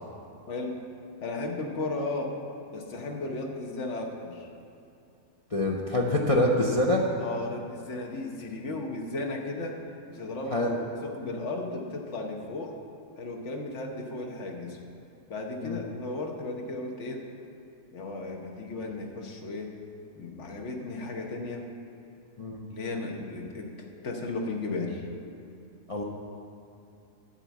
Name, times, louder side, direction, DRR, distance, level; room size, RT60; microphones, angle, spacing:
voice 1, 0.5-0.8 1.2-2.4 2.7-4.5 5.9-6.1 7.2-9.8 10.1-10.6 11.0-12.8 13.2-14.8 15.3-17.3 17.9-19.8 20.1-21.7 22.7-25.1, left 2 dB, 55° left, 2 dB, 1.3 m, -35 dB
voice 2, 5.5-7.1 10.5-10.8 15.6-15.8 22.4-22.6 25.9-26.0, left 1 dB, 35° left, -2 dB, 0.6 m, -25 dB
11.5 x 4.4 x 8.2 m, 2.6 s
omnidirectional pair, 1.5 m